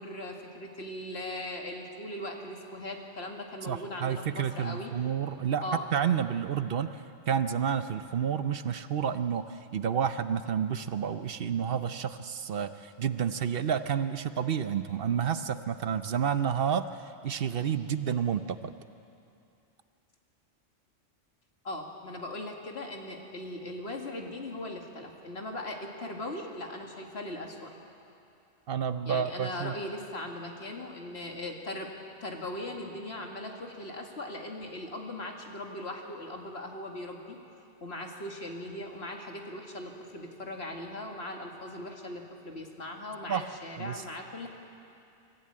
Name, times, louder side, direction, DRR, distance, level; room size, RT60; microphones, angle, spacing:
voice 1, 0.0-4.9 5.6-5.8 21.6-27.7 29.1-31.9 32.2-37.4 37.6-44.5, left 1 dB, 60° left, 2 dB, 2.2 m, -39 dB
voice 2, 3.6-5.6 5.9-18.7 28.7-29.7 43.3-43.4 43.8-44.0, right 8 dB, 55° right, 11 dB, 0.8 m, -30 dB
24.5 x 14.5 x 8.7 m, 2.7 s
omnidirectional pair, 1.2 m